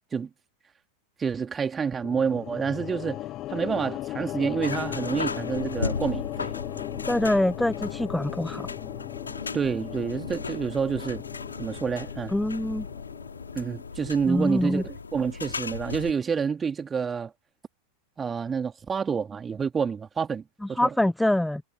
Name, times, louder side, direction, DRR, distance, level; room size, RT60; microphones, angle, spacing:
voice 1, 1.2-6.5 9.5-11.2 11.6-12.3 13.5-17.3 18.2-20.4 20.7-20.9, right 6 dB, 20° right, 3.1 m, -28 dB
sound 1, 2.0-14.3, left 15 dB, 35° left, 1.8 m, -37 dB
sound 2, 4.6-16.1, left 5 dB, 75° left, 2.9 m, -36 dB
voice 2, 7.1-8.7 12.3-12.9 14.3-14.8 20.6-21.6, left 1 dB, 5° left, 0.6 m, -25 dB
figure-of-eight pair, 90°, 0 cm